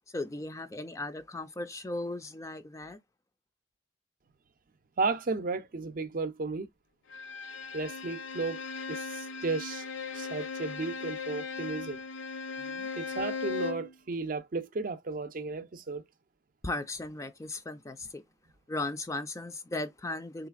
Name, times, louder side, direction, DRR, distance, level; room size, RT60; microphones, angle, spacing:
voice 1, 0.1-3.0 12.6-12.9 16.6-18.2 18.7-20.5, left 2 dB, 15° left, 0.4 m, -37 dB
voice 2, 5.0-6.7 7.7-8.6 8.9-9.8 10.1-12.0 13.0-16.0, right 3 dB, 45° right, 0.5 m, -34 dB
Bowed string instrument, 7.1-13.9, left 5 dB, 85° left, 0.6 m, -38 dB
3.9 x 3.2 x 2.3 m
head